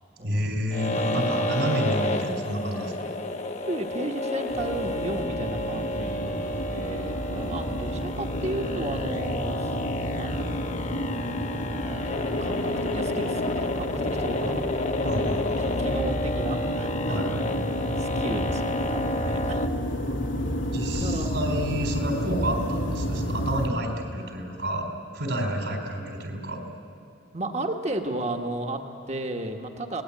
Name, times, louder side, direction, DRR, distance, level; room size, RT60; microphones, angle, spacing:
voice 1, 0.2-3.1 15.0-15.8 17.1-17.3 20.7-24.9 25.1-26.6, equal, 70° right, 3 dB, 4.3 m, -29 dB
sound 1, 0.7-19.7, left 1 dB, 35° left, 1.1 m, -31 dB
voice 2, 3.7-9.7 10.1-10.6 11.8-14.6 15.0-15.3 15.8-17.2 17.7-19.7 21.0-21.3 27.3-30.0, right 1 dB, 35° right, 4 dB, 1.5 m, -34 dB
sound 2, 4.5-23.7, equal, 85° left, 2.5 m, -31 dB
sound 3, 20.9-23.7, left 3 dB, 55° left, 0.6 m, -39 dB
28.5 x 19.0 x 8.7 m, 2.5 s
head